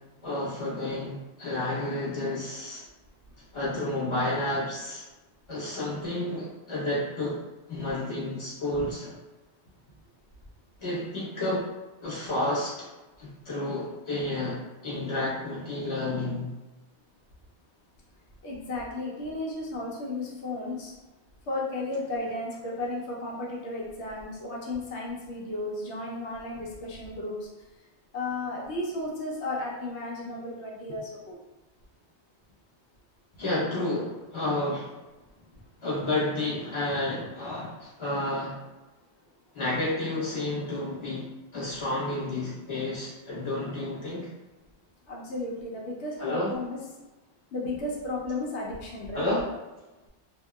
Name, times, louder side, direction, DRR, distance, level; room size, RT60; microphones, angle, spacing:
voice 1, 0.2-2.8 3.5-5.0 5.5-7.4 7.7-9.2 10.8-11.7 12.0-12.9 13.2-16.5 33.4-34.9 35.8-38.6 39.5-44.3 46.2-46.5 49.1-49.4, left 1 dB, 30° left, -8 dB, 1.0 m, -30 dB
voice 2, 18.4-20.9 21.5-27.4 28.1-31.4 45.1-46.8 47.5-49.3, left 2 dB, 90° left, -4 dB, 0.9 m, -34 dB
2.8 x 2.2 x 2.2 m, 1.1 s
omnidirectional pair, 1.1 m